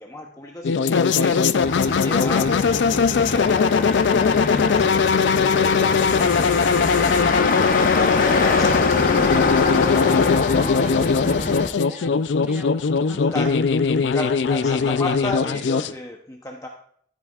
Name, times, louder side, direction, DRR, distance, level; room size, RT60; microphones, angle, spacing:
voice 1, 0.0-5.2 5.6-9.7 12.5-12.6 13.1-13.6 13.9-16.7, left 1 dB, 15° left, 1 dB, 0.7 m, -34 dB
sound 1, 0.6-15.9, left 5 dB, 90° left, 0.4 m, -20 dB
Motor vehicle (road), 1.6-11.7, left 3 dB, 50° left, 0.8 m, -25 dB
voice 2, 10.4-13.4, right 1 dB, 10° right, 0 dB, 1.7 m, -43 dB
13.5 x 8.9 x 2.4 m, 0.63 s
head